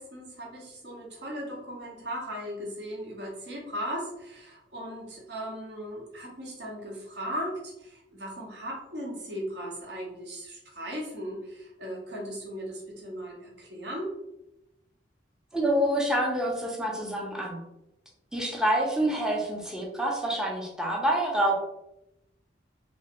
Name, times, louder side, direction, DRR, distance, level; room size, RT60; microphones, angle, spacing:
voice 1, 0.0-14.1, equal, 65° right, -2 dB, 0.9 m, -37 dB
voice 2, 15.5-17.6 18.3-21.6, right 1 dB, 5° right, -2 dB, 0.6 m, -27 dB
3.1 x 3.1 x 2.9 m, 0.89 s
head